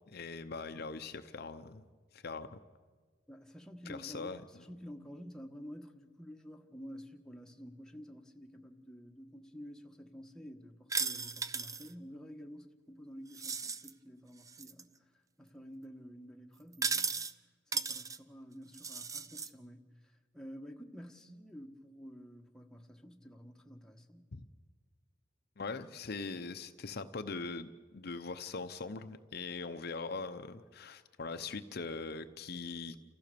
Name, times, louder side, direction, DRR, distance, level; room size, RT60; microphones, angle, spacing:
voice 1, 0.1-1.8 2.1-2.6 3.9-4.4 24.3-24.4 25.6-33.0, left 4 dB, 55° left, 9 dB, 0.8 m, -41 dB
voice 2, 3.3-4.3 4.6-17.3 17.7-24.3, equal, 5° left, 2 dB, 1.3 m, -50 dB
sound 1, 10.9-11.9 13.3-13.9 14.5-14.8 16.7-17.3 17.7-18.2 18.7-19.5, right 5 dB, 20° right, 0.5 m, -36 dB
28.5 x 15.0 x 6.9 m, 1.5 s
head